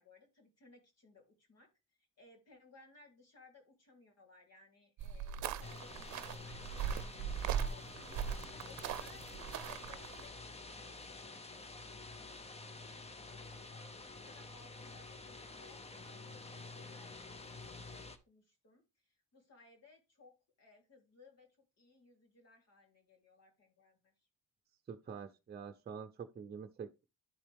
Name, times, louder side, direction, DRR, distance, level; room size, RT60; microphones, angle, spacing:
voice 1, 0.0-1.7 2.2-8.3 8.7-10.3 13.4-24.3, left 3 dB, 55° left, 3.6 m, -62 dB
sound 1, 5.0-10.2, right 8 dB, 70° right, 0.7 m, -39 dB
sound 2, 5.6-18.2, left 3 dB, 20° left, 0.8 m, -49 dB
voice 2, 24.9-27.0, right 6 dB, 30° right, 0.7 m, -46 dB
11.0 x 4.2 x 3.4 m
cardioid pair, 90°, 30 cm